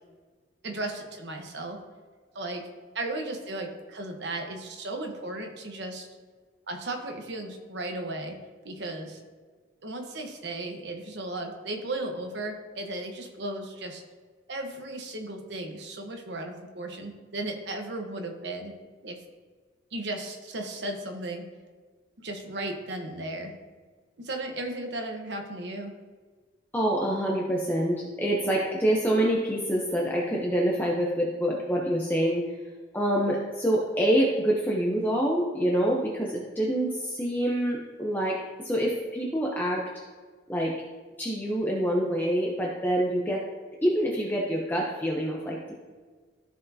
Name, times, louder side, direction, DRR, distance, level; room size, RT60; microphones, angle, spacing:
voice 1, 0.6-1.8 2.3-2.6 2.9-6.1 6.7-8.3 8.6-9.2 9.8-14.0 14.5-18.7 19.0-19.2 19.9-21.4 22.2-23.5 24.2-25.9, right 2 dB, 60° right, 3 dB, 1.1 m, -35 dB
voice 2, 26.7-32.5 32.9-39.9 40.5-40.8 41.2-43.4 43.8-45.7, right 1 dB, 10° left, -3 dB, 0.7 m, -26 dB
14.0 x 4.7 x 2.7 m, 1.5 s
head